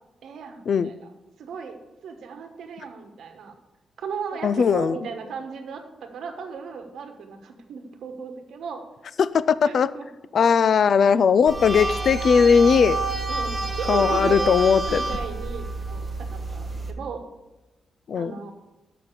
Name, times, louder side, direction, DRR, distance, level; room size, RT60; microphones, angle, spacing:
voice 1, 0.2-1.1 1.4-1.8 2.0-3.6 4.0-8.8 9.6-10.1 10.4-10.5 13.3-17.3 18.1-18.5, right 5 dB, 80° right, 5 dB, 1.1 m, -36 dB
voice 2, 4.4-5.0 9.2-9.9 10.3-13.0 13.9-15.0 18.1-18.3, left 6 dB, 50° left, 16 dB, 0.3 m, -19 dB
sound 1, 11.5-16.9, right 3 dB, 20° right, 0.9 m, -28 dB
6.8 x 5.8 x 7.2 m, 1.1 s
wide cardioid pair, 170°, 0 cm